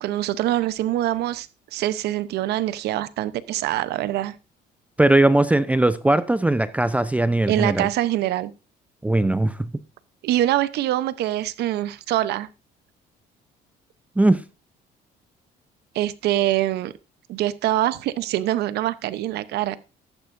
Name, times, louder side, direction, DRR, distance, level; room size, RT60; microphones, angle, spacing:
voice 1, 0.0-1.5 1.7-4.3 7.5-8.5 10.2-12.5 15.9-16.9 17.3-19.8, right 14 dB, 75° right, 0.8 m, -24 dB
voice 2, 5.0-7.9 9.0-9.7 14.2-14.4, right 2 dB, 10° right, 0.5 m, -19 dB
13.5 x 11.5 x 2.6 m
cardioid pair, 110°, 17 cm